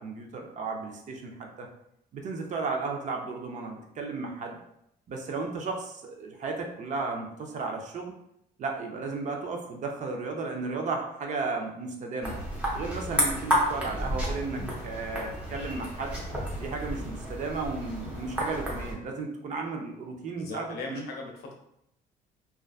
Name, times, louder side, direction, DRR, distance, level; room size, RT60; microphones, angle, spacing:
voice 1, 0.0-1.7 2.1-4.6 5.1-8.1 8.6-12.3 12.7-16.2 16.6-21.0, right 3 dB, 45° right, 2 dB, 0.5 m, -34 dB
sound 1, 12.2-18.9, equal, 10° right, 0.7 m, -31 dB
voice 2, 20.3-21.5, left 3 dB, 70° left, 0 dB, 0.7 m, -38 dB
2.4 x 2.2 x 2.3 m, 0.77 s
cardioid pair, 110°, 17 cm